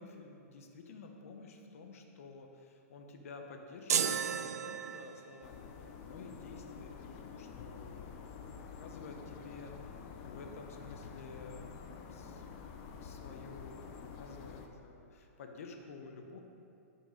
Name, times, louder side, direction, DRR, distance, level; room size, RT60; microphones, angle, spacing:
voice 1, 0.0-12.5 12.8-16.4, left 4 dB, 60° left, 3 dB, 1.0 m, -51 dB
sound 1, 3.9-5.4, right 8 dB, 80° right, 0.4 m, -33 dB
sound 2, 5.4-14.7, left 6 dB, 30° left, 0.6 m, -48 dB
8.8 x 4.5 x 5.1 m, 2.6 s
hypercardioid pair, 160°, 9 cm